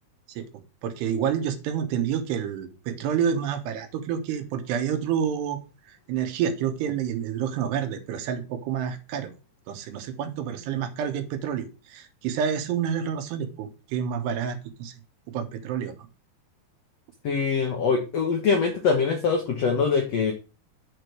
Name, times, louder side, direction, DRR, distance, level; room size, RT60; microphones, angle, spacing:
voice 1, 0.8-5.6 5.9-9.3 9.7-14.9 15.3-16.1, right 8 dB, 85° right, 7 dB, 3.2 m, -29 dB
voice 2, 17.2-20.3, left 5 dB, 85° left, 3 dB, 1.4 m, -23 dB
7.4 x 4.6 x 6.5 m, 0.32 s
omnidirectional pair, 4.7 m